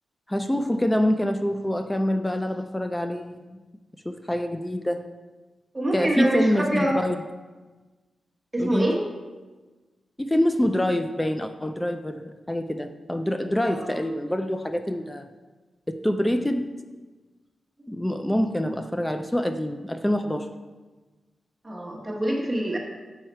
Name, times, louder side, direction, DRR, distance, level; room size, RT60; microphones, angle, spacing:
voice 1, 0.3-3.6 4.1-5.1 5.9-7.2 8.6-8.9 10.2-15.3 15.9-16.7 17.9-20.5, left 1 dB, 10° left, 8 dB, 0.4 m, -26 dB
voice 2, 5.7-7.0 8.5-9.0 13.7-14.0 16.3-16.4 21.6-22.8, right 1 dB, 20° right, -1 dB, 1.2 m, -25 dB
6.4 x 5.6 x 4.4 m, 1.3 s
cardioid pair, 90°, 0 cm